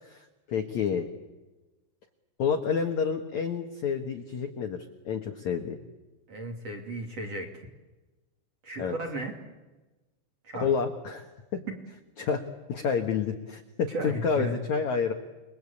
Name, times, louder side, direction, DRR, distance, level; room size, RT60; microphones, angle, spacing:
voice 1, 0.0-1.1 2.4-4.8 5.1-5.8 8.8-9.0 10.5-11.3 11.5-11.6 12.2-12.4 12.7-15.1, left 6 dB, 70° left, 5 dB, 1.8 m, -29 dB
voice 2, 6.3-7.7 8.6-9.3 10.4-10.7 11.7-11.8 13.9-14.6, right 2 dB, 40° right, 2 dB, 3.0 m, -35 dB
29.0 x 22.0 x 8.5 m, 1.1 s
omnidirectional pair, 5.5 m